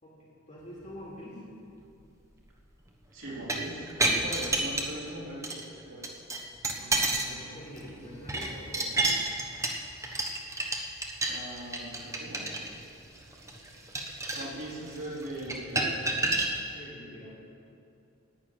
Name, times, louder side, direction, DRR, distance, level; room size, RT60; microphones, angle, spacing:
voice 1, 0.0-1.4 6.7-9.2 16.7-17.4, equal, 35° left, -7 dB, 4.3 m, -46 dB
voice 2, 3.1-6.2 11.2-12.9 14.3-16.4, right 1 dB, 65° right, -6 dB, 4.0 m, -40 dB
sound 1, 3.3-5.1 5.4-5.6 6.0-7.3 7.7-16.5, right 2 dB, 15° right, 1.1 m, -30 dB
11.5 x 9.6 x 9.0 m, 2.5 s
head